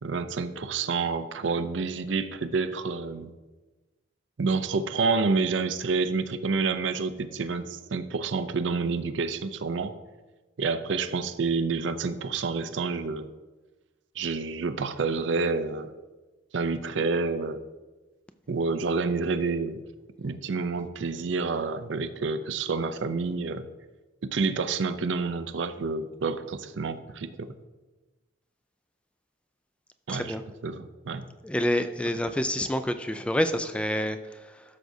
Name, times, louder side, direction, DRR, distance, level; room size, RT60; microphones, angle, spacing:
voice 1, 0.0-3.3 4.4-9.9 10.6-13.3 14.2-15.9 16.5-17.6 18.5-19.8 20.2-23.7 24.2-27.5 30.1-30.3 30.6-31.3, right 4 dB, 75° right, 10 dB, 0.5 m, -28 dB
voice 2, 30.1-30.4 31.4-34.6, equal, 5° left, 9 dB, 0.3 m, -28 dB
12.5 x 6.1 x 2.7 m, 1.2 s
head